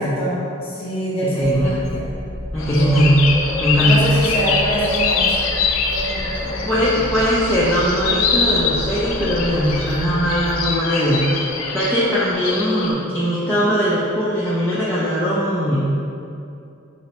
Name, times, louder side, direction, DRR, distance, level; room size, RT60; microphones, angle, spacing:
voice 1, 0.0-2.1 2.8-3.0 3.8-5.5 5.9-6.8, equal, 30° left, -7 dB, 0.7 m, -25 dB
voice 2, 1.2-1.8 2.5-3.2 3.6-4.0 6.4-15.8, equal, 10° left, -10 dB, 0.3 m, -20 dB
sound 1, 1.4-10.6, left 1 dB, 70° right, 0.7 m, -32 dB
sound 2, 2.6-12.9, left 4 dB, 85° left, 0.3 m, -23 dB
4.0 x 2.1 x 2.8 m, 2.5 s
head